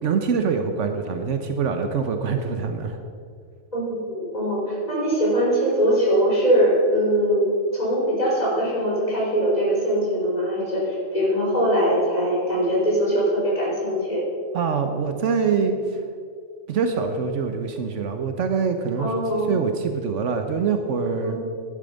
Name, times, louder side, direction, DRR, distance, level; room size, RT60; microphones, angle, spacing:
voice 1, 0.0-3.0 14.5-16.0 16.7-21.4, right 5 dB, 75° right, 6 dB, 1.2 m, -24 dB
voice 2, 3.7-14.2 19.0-19.6 21.2-21.4, equal, 35° left, -5 dB, 4.0 m, -22 dB
11.5 x 11.5 x 5.2 m, 2.2 s
omnidirectional pair, 1.3 m